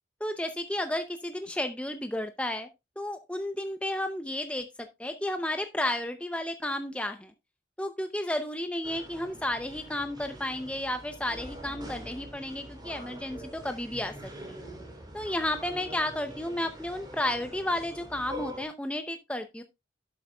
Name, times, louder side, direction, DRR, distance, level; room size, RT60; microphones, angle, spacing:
voice 1, 0.2-2.7 3.0-7.3 7.8-14.3 15.1-19.6, left 1 dB, 5° left, 7 dB, 0.6 m, -32 dB
sound 1, 8.8-18.6, equal, 25° right, 3.4 m, -44 dB
12.0 x 8.0 x 2.3 m, 0.22 s
head